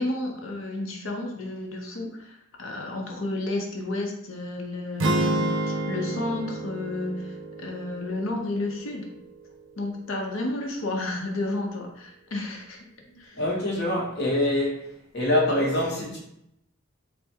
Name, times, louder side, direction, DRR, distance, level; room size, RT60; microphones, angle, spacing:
voice 1, 0.0-9.1 9.8-12.8 13.2-13.4, left 2 dB, 85° left, 0.8 m, -31 dB
sound 1, 5.0-9.2, right 2 dB, 70° right, 0.5 m, -29 dB
voice 2, 13.4-14.8 15.1-16.2, left 1 dB, 55° left, 1.0 m, -24 dB
3.4 x 2.1 x 4.3 m
head